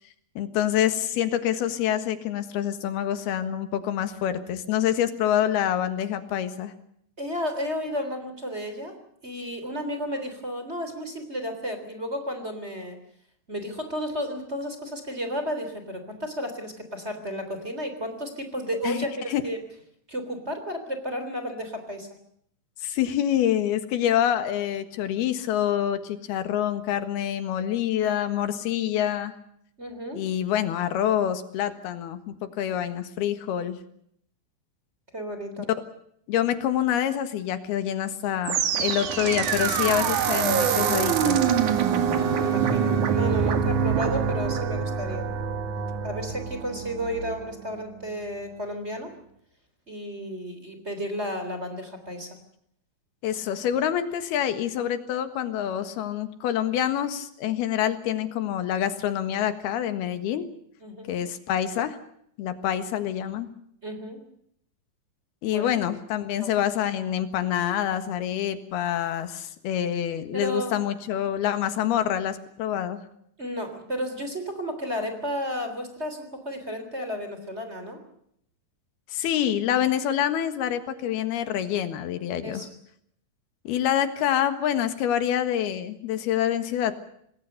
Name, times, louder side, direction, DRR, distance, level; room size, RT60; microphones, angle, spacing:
voice 1, 0.4-6.7 18.8-19.4 22.8-29.3 30.1-32.2 32.6-33.8 36.3-41.5 53.2-60.4 61.1-62.0 62.4-63.5 65.4-73.0 79.1-82.6 83.7-87.0, left 10 dB, 85° left, 10 dB, 3.5 m, -26 dB
voice 2, 7.2-9.0 9.2-13.0 13.5-19.6 20.1-22.1 29.8-30.2 35.1-35.7 42.4-45.3 46.0-49.1 49.9-52.4 60.8-61.1 63.8-64.2 65.5-65.7 66.4-66.5 70.3-70.7 73.4-78.0 82.4-82.7, equal, 15° right, 7 dB, 3.4 m, -32 dB
sound 1, 38.4-47.6, right 7 dB, 60° right, 3.0 m, -25 dB
27.0 x 20.0 x 6.7 m, 0.70 s
omnidirectional pair, 4.4 m